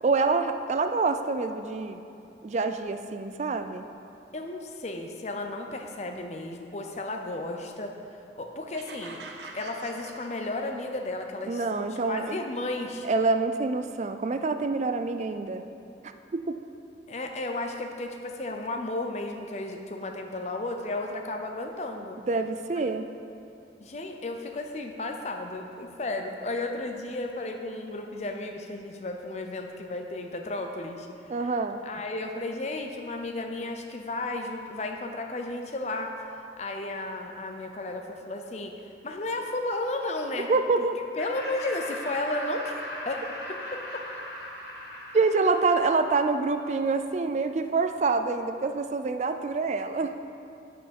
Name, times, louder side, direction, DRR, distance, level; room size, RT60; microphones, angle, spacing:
voice 1, 0.0-2.0 2.4-3.9 11.5-12.3 13.0-15.6 16.3-16.5 22.3-23.1 31.3-31.8 40.5-41.0 45.1-50.1, right 4 dB, 40° right, 8 dB, 0.3 m, -26 dB
voice 2, 4.3-8.0 8.4-9.2 9.5-13.1 17.1-22.2 22.7-22.9 23.8-31.1 31.4-31.5 31.8-36.1 36.6-40.5 41.2-43.3 43.7-44.0 45.4-45.6, left 2 dB, 35° left, 4 dB, 0.6 m, -33 dB
sound 1, 8.7-11.0, right 3 dB, 75° right, 0.7 m, -45 dB
Laughter, 41.2-46.5, left 1 dB, 65° left, 1.2 m, -39 dB
7.8 x 5.6 x 5.3 m, 2.6 s
head